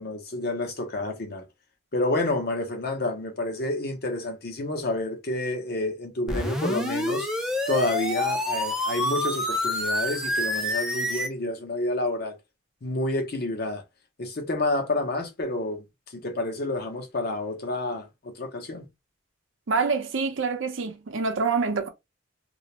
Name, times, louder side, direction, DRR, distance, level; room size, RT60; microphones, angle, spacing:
voice 1, 0.0-1.4 1.9-7.3 7.7-12.3 12.8-13.8 14.2-15.8 16.1-18.9, left 2 dB, 55° left, 0.7 m, -29 dB
sound 1, 6.3-11.3, left 1 dB, 5° right, 0.3 m, -27 dB
voice 2, 19.7-21.9, right 4 dB, 90° right, 0.6 m, -26 dB
2.4 x 2.0 x 2.9 m
head